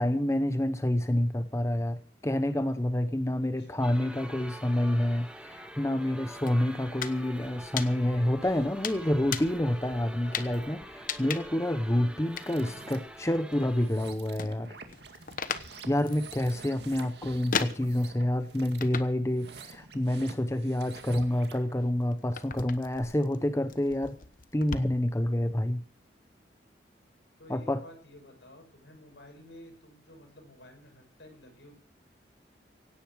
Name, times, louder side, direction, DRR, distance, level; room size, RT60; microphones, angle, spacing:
voice 1, 0.0-10.8 11.2-14.8 15.9-24.2 24.5-25.8 27.5-27.8, left 1 dB, 15° left, 10 dB, 0.8 m, -28 dB
sound 1, 3.8-13.9, right 1 dB, 5° right, 1.7 m, -45 dB
sound 2, 6.5-7.2 7.5-8.3 8.8-9.6 10.3-10.6 11.1-11.7 12.4-12.5 13.0-14.0 14.3-18.2 18.8-19.3 19.6-20.3 20.9-24.8, left 6 dB, 50° left, 1.1 m, -37 dB
voice 2, 8.8-9.3 10.2-11.0 27.4-31.7, left 1 dB, 80° left, 3 dB, 6.8 m, -52 dB
sound 3, 12.2-13.0 13.7-21.7, right 4 dB, 65° right, 2.2 m, -48 dB
17.0 x 9.9 x 6.3 m, 0.43 s
head